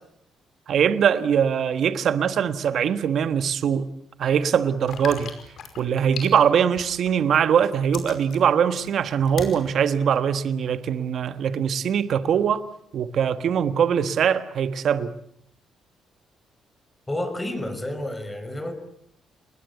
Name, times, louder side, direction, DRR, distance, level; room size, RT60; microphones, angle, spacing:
voice 1, 0.7-3.9 4.2-5.3 5.8-12.6 12.9-15.1, right 8 dB, 65° right, 1.5 m, -22 dB
sound 1, 4.8-7.2 7.6-9.6 10.2-10.3, left 7 dB, 75° left, 5.3 m, -38 dB
voice 2, 17.1-18.7, left 1 dB, 15° left, 5.7 m, -30 dB
29.0 x 21.0 x 8.2 m
cardioid pair, 90°, 0 cm